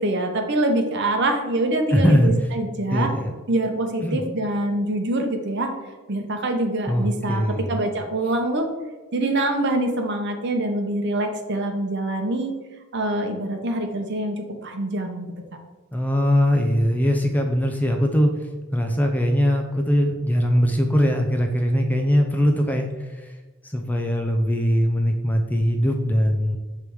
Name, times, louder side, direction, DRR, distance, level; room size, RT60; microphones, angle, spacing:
voice 1, 0.0-3.1 3.5-5.7 6.1-8.7 9.1-12.5 12.9-15.3, right 1 dB, 50° right, 5 dB, 0.8 m, -25 dB
voice 2, 1.9-2.3 2.9-3.3 4.0-4.2 6.9-7.7 15.9-18.3 18.7-23.3 23.7-26.6, equal, 5° left, 3 dB, 0.4 m, -21 dB
7.0 x 3.4 x 4.6 m, 1.3 s
head